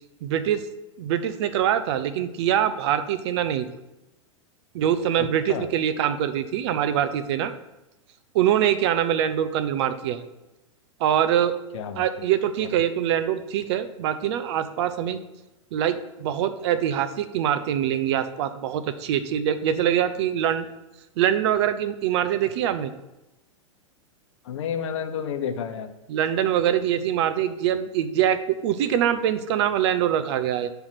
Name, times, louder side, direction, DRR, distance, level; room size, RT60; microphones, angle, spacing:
voice 1, 0.2-0.6 1.0-3.6 4.7-7.5 8.3-10.2 11.0-11.5 12.0-15.2 15.7-20.6 21.2-22.9 26.1-30.7, right 10 dB, 55° right, 11 dB, 0.7 m, -24 dB
voice 2, 5.2-5.7 11.7-12.3 12.6-12.7 24.4-25.9, left 8 dB, 65° left, 8 dB, 0.8 m, -31 dB
8.7 x 3.4 x 5.9 m, 0.97 s
hypercardioid pair, 110°, 17 cm